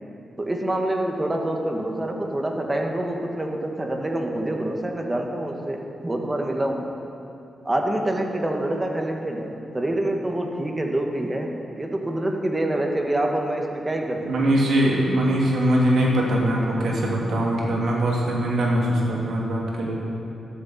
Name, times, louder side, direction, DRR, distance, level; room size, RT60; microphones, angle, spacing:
voice 1, 0.4-7.0 7.7-14.6, right 1 dB, 20° right, 2 dB, 1.7 m, -26 dB
voice 2, 14.2-20.0, right 1 dB, 75° right, -3 dB, 2.7 m, -22 dB
13.0 x 13.0 x 4.4 m, 2.7 s
cardioid pair, 70°, 0 cm